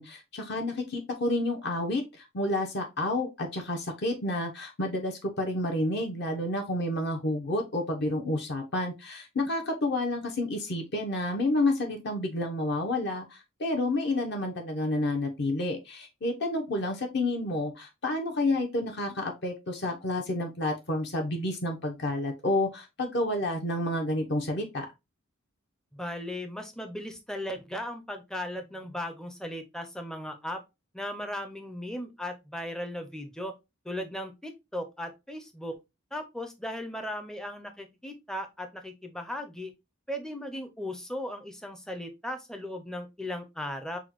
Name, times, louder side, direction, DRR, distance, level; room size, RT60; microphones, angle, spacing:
voice 1, 0.0-24.9, left 1 dB, 50° left, 0.7 m, -30 dB
voice 2, 25.9-30.6 30.9-33.5 33.8-35.8 36.1-39.7 40.1-44.0, left 1 dB, 5° left, 0.4 m, -37 dB
6.0 x 2.2 x 2.9 m
head